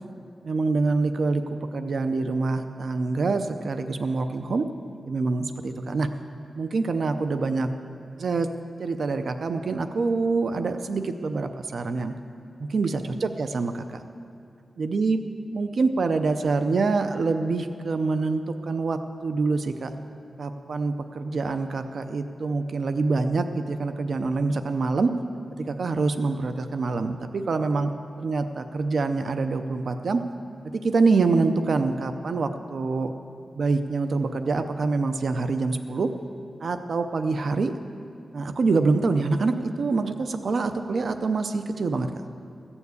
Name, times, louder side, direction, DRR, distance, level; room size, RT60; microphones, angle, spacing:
voice 1, 0.4-1.4 1.7-4.7 5.1-6.1 6.6-7.7 8.2-8.5 8.8-12.1 12.6-14.0 14.8-15.2 15.5-19.9 20.4-25.1 25.7-27.9 28.2-30.2 30.7-33.1 33.6-36.1 36.6-37.7 38.3-42.1, right 3 dB, 65° right, 8 dB, 0.5 m, -25 dB
15.0 x 7.1 x 8.2 m, 2.4 s
wide cardioid pair, 130°, 0 cm